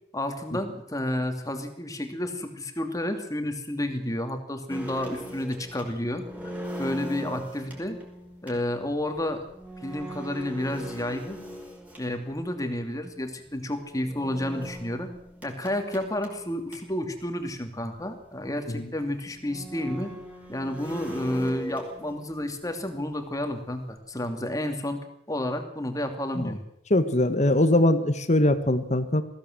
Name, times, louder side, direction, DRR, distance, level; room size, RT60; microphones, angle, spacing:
voice 1, 0.1-6.3 6.8-8.0 8.4-9.4 9.8-11.4 12.0-15.1 15.4-20.1 20.5-26.6, left 1 dB, 20° left, 6 dB, 2.7 m, -31 dB
sound 1, 4.7-12.5 14.0-17.1 17.4-17.5 17.8-17.9 18.6-18.7 19.3-22.5 22.8-23.9, equal, 10° right, 5.4 m, -40 dB
voice 2, 26.9-29.2, left 1 dB, 45° left, 11 dB, 1.6 m, -22 dB
20.5 x 16.0 x 7.9 m, 0.74 s
head